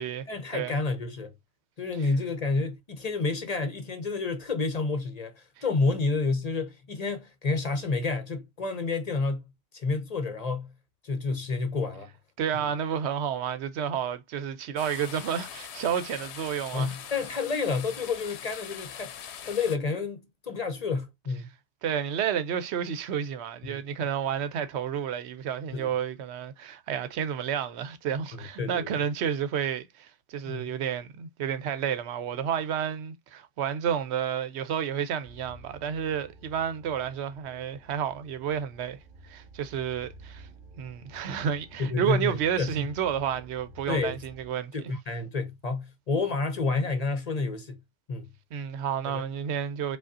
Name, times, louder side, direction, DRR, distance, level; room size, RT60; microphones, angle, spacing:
voice 1, 0.3-1.3 1.8-10.7 11.0-12.1 16.7-21.5 23.6-23.8 25.7-25.9 28.3-29.0 30.4-30.7 41.8-42.9 43.9-44.2 44.7-47.8 48.1-48.3 49.1-49.2, left 4 dB, 45° left, 0.7 m, -30 dB
voice 2, 12.4-16.9 21.8-39.0 39.2-40.5 40.8-44.9 48.5-50.0, right 8 dB, 85° right, 0.9 m, -31 dB
sound 1, 14.8-19.8, left 9 dB, 85° left, 0.8 m, -42 dB
sound 2, 35.2-44.5, left 1 dB, 60° right, 1.0 m, -51 dB
4.9 x 2.4 x 2.5 m
omnidirectional pair, 1.1 m